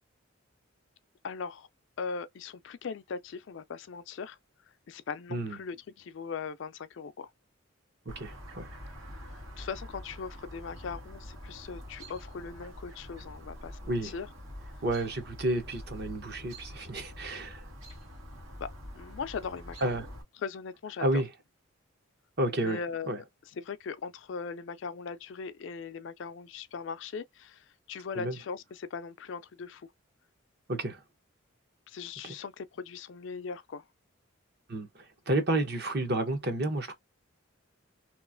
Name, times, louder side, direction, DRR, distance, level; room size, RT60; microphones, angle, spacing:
voice 1, 1.2-1.7 2.0-4.4 4.9-7.3 9.3-14.3 18.6-20.0 20.4-21.2 22.6-29.9 31.9-33.8, left 5 dB, 60° left, 0.4 m, -39 dB
Chirp tweet, 8.1-20.2, equal, 90° right, 1.7 m, -46 dB
voice 2, 8.2-8.7 13.9-14.1 14.8-17.6 19.8-20.0 21.0-21.3 22.4-22.8 23.1-23.2 28.2-28.3 30.7-31.0 34.7-34.9 35.3-36.9, right 1 dB, 50° right, 0.8 m, -30 dB
3.0 x 2.4 x 2.5 m
head